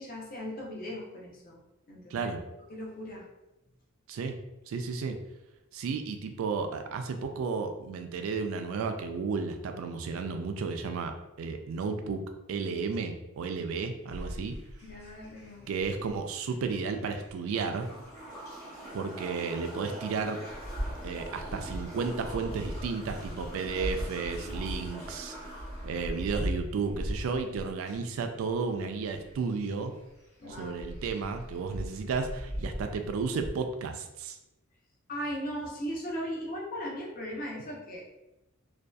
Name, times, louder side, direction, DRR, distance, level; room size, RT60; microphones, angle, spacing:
voice 1, 0.0-1.6 1.9-2.3 2.7-3.3 14.8-15.7 30.4-30.8 35.1-38.1, equal, 45° left, -2 dB, 0.6 m, -38 dB
voice 2, 4.7-5.2 5.7-14.6 15.7-17.9 18.9-20.4 21.0-25.4 25.8-29.9 30.6-34.4, right 4 dB, 70° right, 6 dB, 0.3 m, -33 dB
sound 1, 14.1-33.5, equal, 70° left, 1.2 m, -40 dB
sound 2, 17.6-26.2, right 1 dB, 15° left, 0.9 m, -44 dB
2.6 x 2.2 x 2.2 m, 0.94 s
head